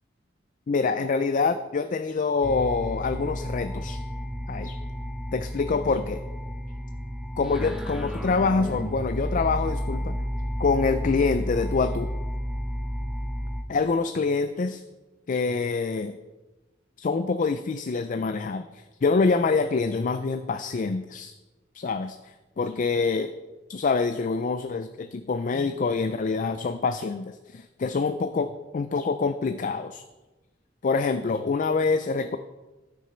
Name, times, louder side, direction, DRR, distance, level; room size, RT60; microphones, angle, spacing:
voice 1, 0.7-4.0 4.5-4.8 5.3-6.2 7.4-10.2 10.6-12.1 13.7-14.8 15.3-16.1 17.0-21.3 21.7-23.3 23.7-30.0 30.8-32.4, left 4 dB, 45° left, 10 dB, 0.4 m, -26 dB
sound 1, 2.4-13.6, equal, ahead, 0.6 m, -31 dB
13.5 x 6.3 x 4.4 m, 1.1 s
head